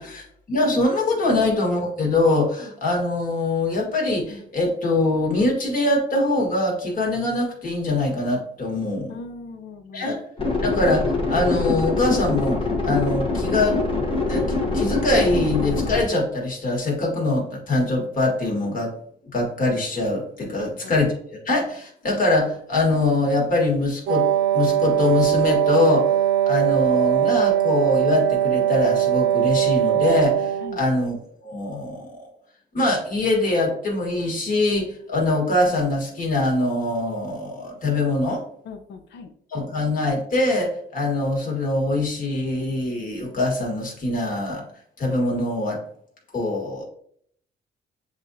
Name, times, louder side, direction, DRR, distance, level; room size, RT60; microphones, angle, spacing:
voice 1, 0.0-9.1 9.9-10.2 10.6-13.8 14.3-14.5 14.7-18.9 19.3-24.3 24.5-26.1 26.5-32.3 32.7-38.4 39.5-44.6 45.0-45.8 46.3-46.9, left 2 dB, 50° left, -1 dB, 1.7 m, -23 dB
voice 2, 9.1-10.1 20.6-20.9 30.6-30.8 38.6-39.3, left 4 dB, 75° left, 6 dB, 0.7 m, -38 dB
sound 1, 10.4-16.0, left 3 dB, 30° left, 1.1 m, -24 dB
Wind instrument woodwind instrument, 24.1-30.8, right 11 dB, 80° right, 0.7 m, -20 dB
7.2 x 2.5 x 2.7 m, 0.64 s
cardioid pair, 110°, 18 cm